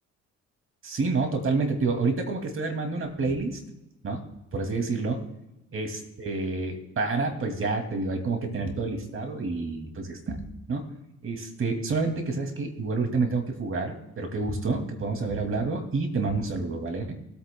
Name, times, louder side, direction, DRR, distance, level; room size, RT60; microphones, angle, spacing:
voice 1, 0.8-3.6 4.0-4.2 4.5-5.2 5.7-10.4 10.7-10.8 11.2-17.1, right 3 dB, 45° right, 4 dB, 2.5 m, -28 dB
21.0 x 8.9 x 2.3 m, 0.92 s
cardioid pair, 90°, 30 cm